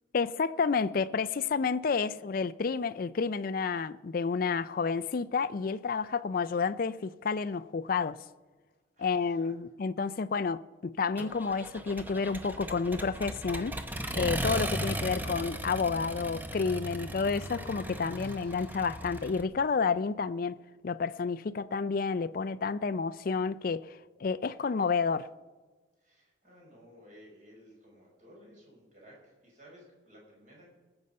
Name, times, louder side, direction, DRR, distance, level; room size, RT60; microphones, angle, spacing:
voice 1, 0.1-8.2 9.0-13.8 14.1-25.3, left 5 dB, 45° left, 0.4 m, -30 dB
voice 2, 8.9-9.5 18.2-18.7 26.0-30.8, equal, 40° right, 5.2 m, -56 dB
Accelerating revving vroom, 11.2-19.4, right 1 dB, 10° right, 0.8 m, -37 dB
19.0 x 7.9 x 5.4 m
head